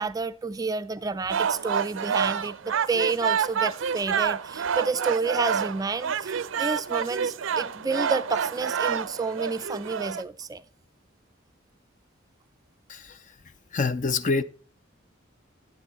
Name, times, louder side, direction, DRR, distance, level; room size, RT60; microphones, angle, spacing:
voice 1, 0.0-10.6, right 4 dB, 20° right, 0.4 m, -30 dB
sound 1, 1.3-10.2, right 7 dB, 80° right, 0.5 m, -28 dB
voice 2, 13.7-14.4, left 4 dB, 40° left, 0.5 m, -26 dB
10.5 x 8.5 x 4.1 m
head